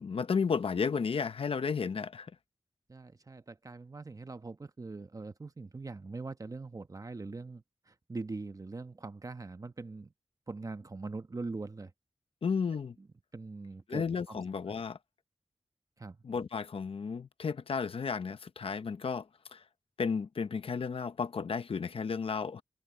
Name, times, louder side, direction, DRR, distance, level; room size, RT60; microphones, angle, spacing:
voice 1, 0.0-2.3 12.4-13.0 13.9-15.0 16.2-19.6 20.0-22.6, left 5 dB, 75° left, 0.8 m, -33 dB
voice 2, 2.9-10.1 10.5-11.9 13.0-13.1 13.3-14.4 16.0-16.2, right 3 dB, 40° right, 1.0 m, -42 dB
wide cardioid pair, 90°, 10 cm